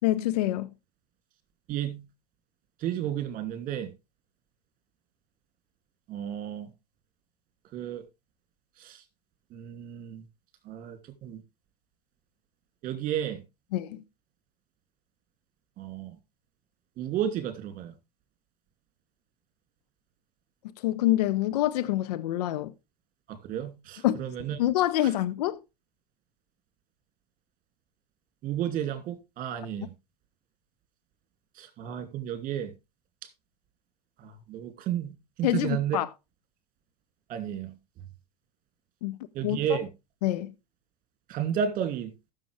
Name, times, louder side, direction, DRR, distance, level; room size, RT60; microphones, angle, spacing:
voice 1, 0.0-0.7 13.7-14.0 20.8-22.7 24.0-24.2 24.6-25.6 35.4-36.1 39.0-39.2 39.4-39.8 40.2-40.5, left 14 dB, 70° left, 0.7 m, -26 dB
voice 2, 1.7-2.0 2.8-3.9 6.1-6.7 7.7-8.0 8.8-9.0 9.5-10.2 10.6-11.4 12.8-13.4 15.8-16.1 17.0-17.9 23.3-24.6 25.0-25.1 28.4-29.9 31.6-32.7 34.2-35.1 35.4-36.0 37.3-37.8 39.3-39.9 41.3-42.1, right 9 dB, 40° right, 2.6 m, -32 dB
14.5 x 6.8 x 3.4 m
hypercardioid pair, 90°, 21 cm